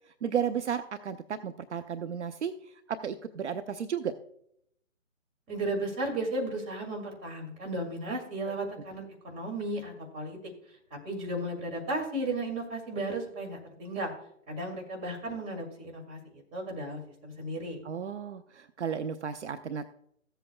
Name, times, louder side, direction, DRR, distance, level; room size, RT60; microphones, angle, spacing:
voice 1, 0.2-4.1 8.5-8.6 17.8-19.9, right 7 dB, 60° right, 10 dB, 0.7 m, -34 dB
voice 2, 5.5-10.4 10.9-14.1 14.5-17.8, right 1 dB, 15° right, 0 dB, 2.2 m, -35 dB
15.5 x 7.9 x 2.3 m, 0.71 s
hypercardioid pair, 150°, 39 cm